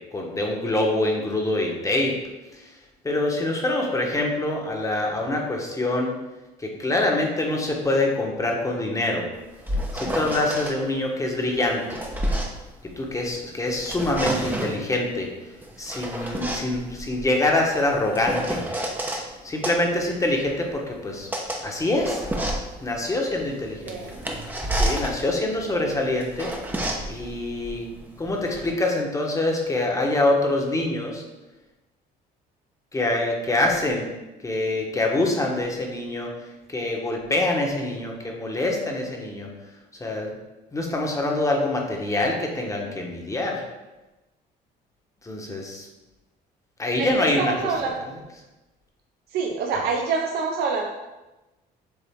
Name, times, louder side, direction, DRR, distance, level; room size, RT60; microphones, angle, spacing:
voice 1, 0.1-2.1 2.6-2.7 3.0-6.2 6.6-9.2 9.9-12.0 13.0-15.3 15.8-18.6 19.4-21.3 21.6-22.3 22.8-24.0 24.7-26.5 27.1-27.9 28.2-31.2 32.9-34.1 34.4-36.3 36.7-39.5 40.0-40.3 40.7-43.6 45.2-45.9 46.8-47.5, left 2 dB, 20° left, 0 dB, 1.2 m, -25 dB
sound 1, 9.4-10.8 11.6-13.4 13.7-14.9 15.6-19.3 19.6-28.7, right 1 dB, 10° right, 0.9 m, -30 dB
voice 2, 23.9-24.2 47.0-48.0 49.3-50.9, right 5 dB, 70° right, 1 dB, 0.7 m, -26 dB
7.2 x 3.6 x 3.6 m, 1.1 s
cardioid pair, 110°, 17 cm